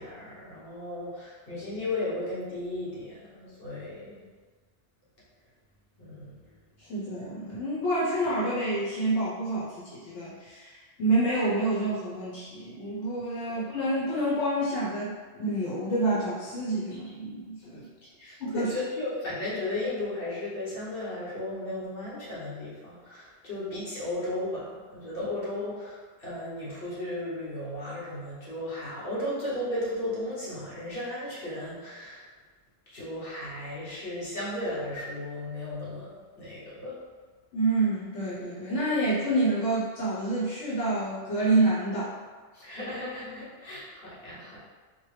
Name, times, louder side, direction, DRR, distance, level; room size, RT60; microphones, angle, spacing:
voice 1, 0.0-4.3 6.0-6.6 13.5-13.6 18.2-32.3 32.9-37.0 42.5-44.6, left 1 dB, 55° left, -8 dB, 1.4 m, -35 dB
voice 2, 6.8-17.9 18.4-18.7 37.5-42.1, right 2 dB, 85° left, -7 dB, 1.1 m, -28 dB
4.4 x 2.1 x 3.2 m, 1.4 s
omnidirectional pair, 1.2 m